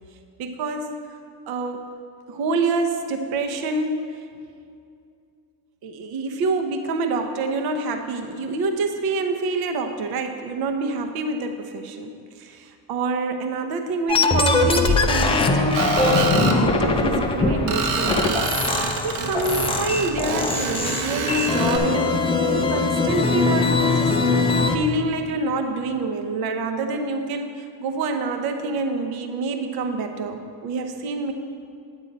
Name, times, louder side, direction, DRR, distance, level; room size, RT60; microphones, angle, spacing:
voice 1, 0.4-1.0 1.5-1.8 2.3-4.3 5.8-18.3 18.6-22.2 22.5-31.3, right 3 dB, 50° right, 6 dB, 0.8 m, -27 dB
sound 1, 14.1-24.8, left 3 dB, 15° left, 0.4 m, -21 dB
Screech, 15.7-16.6 17.7-21.8, right 4 dB, 75° right, 1.2 m, -27 dB
9.6 x 8.9 x 4.0 m, 2.4 s
cardioid pair, 140°, 46 cm